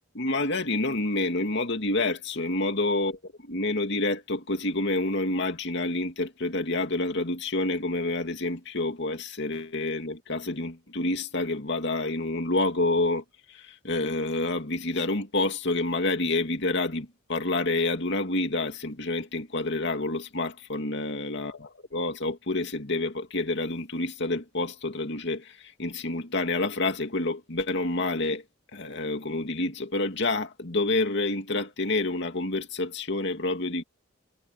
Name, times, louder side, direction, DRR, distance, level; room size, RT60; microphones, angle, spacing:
voice 1, 0.1-21.6 21.9-28.4 28.7-33.8, left 2 dB, 60° left, 2.6 m, -28 dB
head